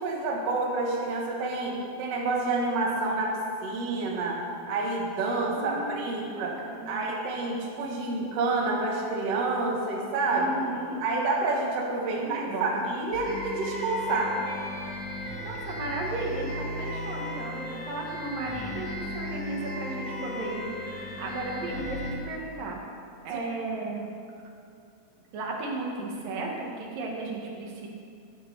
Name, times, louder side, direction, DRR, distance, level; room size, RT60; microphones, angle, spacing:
voice 1, 0.0-4.4 4.7-6.5 6.9-10.5 11.0-14.4, right 3 dB, 50° right, -1 dB, 2.6 m, -28 dB
voice 2, 5.6-5.9 6.3-7.0 10.3-11.0 12.1-12.8 15.1-22.8 23.2-24.1 25.3-27.9, right 2 dB, 75° right, -1 dB, 3.1 m, -35 dB
sound 1, 13.1-22.1, left 1 dB, 45° left, 3.8 m, -36 dB
13.0 x 12.5 x 5.4 m, 2.4 s
omnidirectional pair, 4.1 m